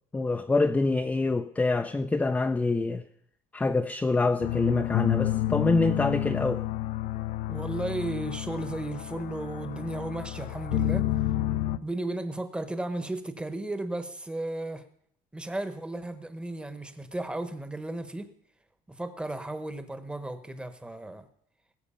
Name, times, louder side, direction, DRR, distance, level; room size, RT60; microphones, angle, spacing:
voice 1, 0.1-3.0 3.5-6.6, left 3 dB, 10° left, 0.5 m, -26 dB
sound 1, 4.4-11.8, left 14 dB, 60° left, 0.6 m, -30 dB
voice 2, 7.5-11.0 11.8-14.8 15.3-18.3 18.9-21.3, right 2 dB, 5° right, 1.0 m, -34 dB
20.0 x 7.9 x 5.6 m
cardioid pair, 150°, 14 cm